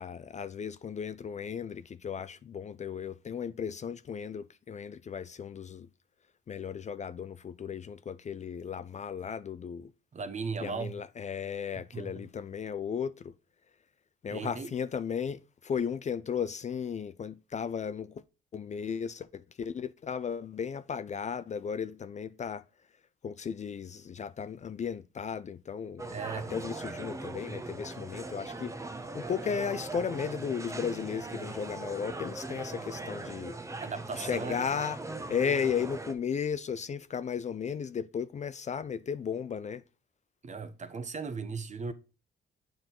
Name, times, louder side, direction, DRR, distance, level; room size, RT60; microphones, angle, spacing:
voice 1, 0.0-5.9 6.5-9.9 10.6-13.3 14.2-18.2 18.5-22.6 23.2-28.7 29.1-33.5 34.2-39.8, left 7 dB, 35° left, 0.4 m, -35 dB
voice 2, 10.1-10.9 11.9-12.1 14.3-14.7 26.1-26.5 33.8-34.6 40.4-41.9, right 5 dB, 35° right, 1.0 m, -37 dB
sound 1, 26.0-36.1, right 2 dB, 15° right, 0.9 m, -40 dB
7.6 x 4.5 x 3.8 m
cardioid pair, 90°, 20 cm